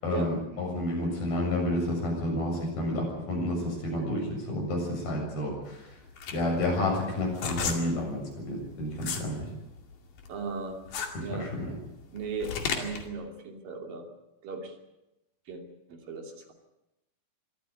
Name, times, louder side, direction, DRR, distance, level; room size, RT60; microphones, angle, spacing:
voice 1, 0.0-5.9 6.3-9.4 11.1-11.6, left 1 dB, 80° left, 0 dB, 9.1 m, -30 dB
sound 1, 5.7-9.3 9.7-13.1, left 6 dB, 60° left, 3.9 m, -34 dB
voice 2, 10.3-10.8 11.1-11.5 12.1-14.1 14.4-14.8 15.5-15.6 15.9-16.5, right 4 dB, 65° right, 3 dB, 4.4 m, -37 dB
24.0 x 14.0 x 9.7 m, 0.95 s
omnidirectional pair, 4.2 m